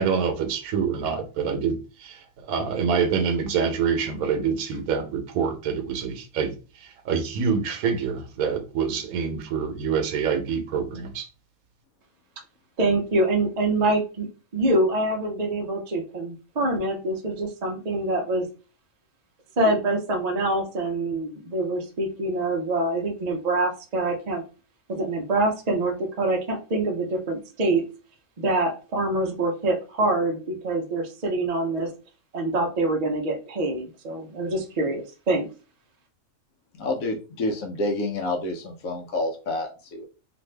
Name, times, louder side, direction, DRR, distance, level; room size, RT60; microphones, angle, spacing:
voice 1, 0.0-2.2 2.5-6.6 7.0-11.3, right 6 dB, 90° right, 1.1 m, -26 dB
voice 2, 12.8-14.3 14.5-18.5 19.6-24.4 24.9-27.8 28.4-31.9 32.3-35.5, right 2 dB, 55° right, 0.4 m, -25 dB
voice 3, 36.8-40.1, left 2 dB, 75° left, 1.0 m, -28 dB
2.6 x 2.5 x 3.2 m
omnidirectional pair, 1.5 m